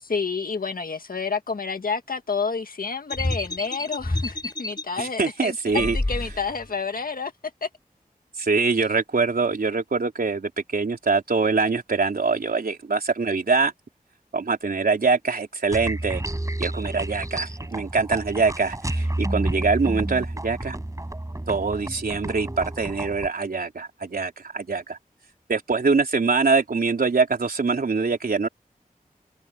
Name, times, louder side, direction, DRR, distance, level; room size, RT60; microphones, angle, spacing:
voice 1, 0.0-7.3 7.6-7.7, left 5 dB, 80° left, 1.9 m, -29 dB
sound 1, 3.1-4.8 5.7-6.7, left 1 dB, 25° left, 6.3 m, -28 dB
voice 2, 5.0-6.0 8.4-13.7 14.3-16.2 16.6-20.8 21.5-25.0 25.5-28.5, right 4 dB, 85° right, 3.8 m, -24 dB
sound 2, 15.7-23.3, right 1 dB, 20° right, 6.7 m, -30 dB
wide cardioid pair, 75°, 15 cm